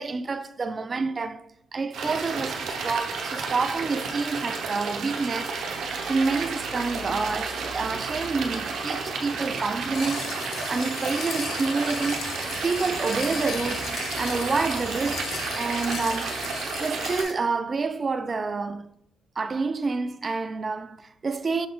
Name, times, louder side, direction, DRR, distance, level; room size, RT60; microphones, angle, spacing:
voice 1, 0.0-1.4 1.7-5.6 6.1-10.4 10.7-12.4 12.6-16.4 16.8-18.9 19.4-21.7, right 4 dB, 35° right, 0.3 m, -28 dB
sound 1, 1.9-17.2, right 4 dB, 70° right, 0.7 m, -32 dB
sound 2, 9.9-17.3, left 5 dB, 70° left, 0.6 m, -36 dB
6.1 x 3.8 x 2.2 m
cardioid pair, 90°, 0 cm